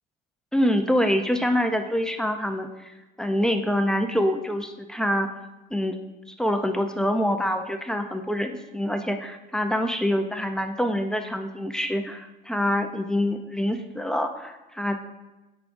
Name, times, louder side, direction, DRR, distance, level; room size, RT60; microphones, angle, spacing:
voice 1, 0.5-5.3 5.7-6.0 6.3-15.0, equal, 5° left, 5 dB, 0.3 m, -25 dB
14.5 x 5.0 x 2.5 m, 1.1 s
cardioid pair, 175°, 20 cm